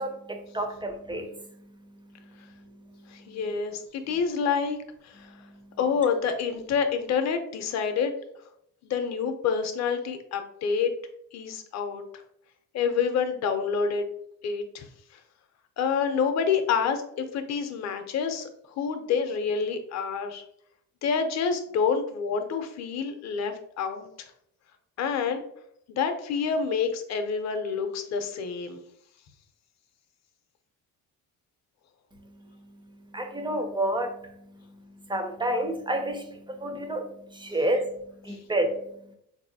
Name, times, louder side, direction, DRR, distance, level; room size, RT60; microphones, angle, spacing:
voice 1, 0.0-3.4 5.2-5.8 32.1-39.2, right 1 dB, 15° right, 6 dB, 0.3 m, -32 dB
voice 2, 3.1-4.8 5.0-5.4 5.8-8.1 8.8-10.9 11.3-12.0 12.7-14.1 14.4-14.9 15.8-18.5 18.8-20.4 21.0-24.3 25.0-25.4 25.9-28.8 38.3-38.4, left 6 dB, 50° left, 7 dB, 0.6 m, -28 dB
3.9 x 2.6 x 2.6 m, 0.72 s
cardioid pair, 115°, 35 cm